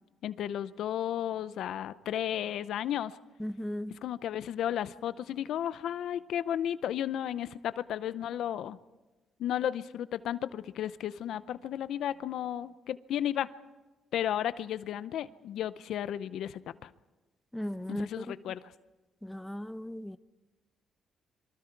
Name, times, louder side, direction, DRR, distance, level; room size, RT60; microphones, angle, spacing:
voice 1, 0.2-3.2 4.0-8.8 9.4-13.5 14.1-16.9 17.9-18.6, left 10 dB, 75° left, 0.6 m, -33 dB
voice 2, 3.4-4.0 17.5-18.5 19.2-20.2, equal, 5° left, 0.7 m, -37 dB
26.5 x 23.5 x 4.6 m
cardioid pair, 90°, 0 cm